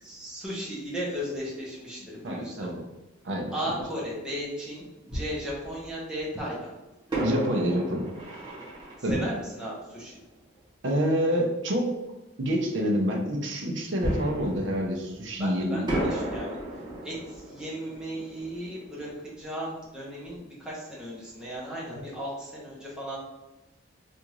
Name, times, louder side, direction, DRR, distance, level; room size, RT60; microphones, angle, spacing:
voice 1, 0.0-2.7 3.5-6.7 9.1-10.2 15.4-16.5 17.0-23.2, equal, 5° right, -7 dB, 0.9 m, -35 dB
voice 2, 2.2-2.8 3.2-3.5 7.2-8.1 9.0-9.2 10.8-12.0 12.4-15.9 21.9-22.0, equal, 65° right, 0 dB, 0.6 m, -27 dB
Fireworks, 5.1-6.2 7.1-10.6 14.0-15.5 15.9-20.4 20.7-20.8 21.3-21.5, right 1 dB, 20° right, 1.2 m, -35 dB
3.5 x 2.5 x 3.0 m, 1.0 s
head